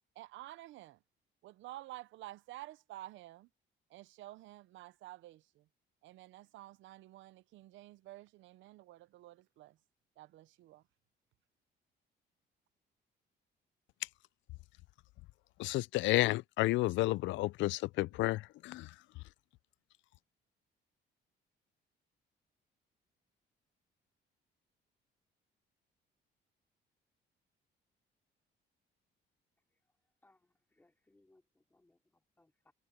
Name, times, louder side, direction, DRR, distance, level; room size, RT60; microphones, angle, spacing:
voice 1, 0.2-1.0 1.4-3.5 3.9-5.7 6.0-9.8 10.2-10.8, right 16 dB, 85° right, 0.7 m, -51 dB
voice 2, 15.6-18.9, left 18 dB, 75° left, 0.4 m, -31 dB
voice 3, 30.2-32.7, left 2 dB, 10° left, 4.4 m, -70 dB
cardioid pair, 140°, 19 cm